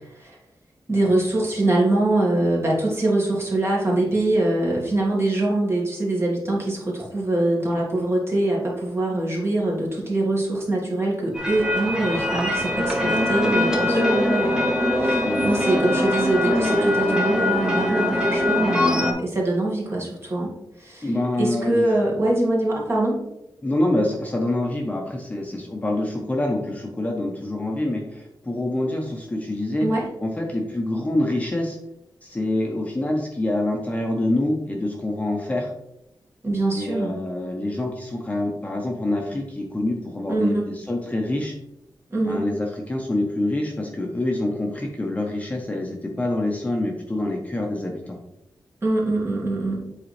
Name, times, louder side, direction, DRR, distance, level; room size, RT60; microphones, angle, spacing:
voice 1, 0.9-14.7 15.0-21.1 21.4-23.2 29.8-30.1 36.4-37.2 40.3-40.7 42.1-42.4 48.8-49.9, right 2 dB, 35° right, -3 dB, 1.9 m, -23 dB
sound 1, 11.3-19.1, left 1 dB, 10° right, 1.0 m, -22 dB
voice 2, 15.2-15.8 21.0-21.9 23.6-29.9 30.2-31.8 32.2-35.7 36.8-41.5 42.2-48.2, left 1 dB, 20° left, 0 dB, 0.9 m, -26 dB
7.8 x 4.1 x 3.2 m, 0.85 s
wide cardioid pair, 130°, 8 cm